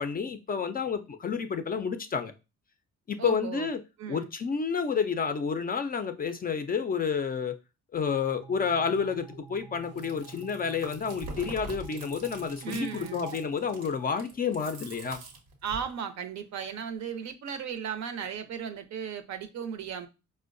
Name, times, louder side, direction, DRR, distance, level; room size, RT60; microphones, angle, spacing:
voice 1, 0.0-2.3 3.1-3.8 4.1-7.6 7.9-15.2, left 6 dB, 30° left, 0.4 m, -30 dB
voice 2, 3.2-3.7 4.0-4.3 12.6-13.3 15.6-20.1, right 7 dB, 65° right, 0.6 m, -36 dB
sound 1, 8.1-14.6, right 2 dB, 20° right, 0.6 m, -48 dB
Chewing mastication, 9.8-15.9, right 2 dB, 90° right, 0.9 m, -44 dB
4.5 x 2.1 x 2.5 m
cardioid pair, 90°, 30 cm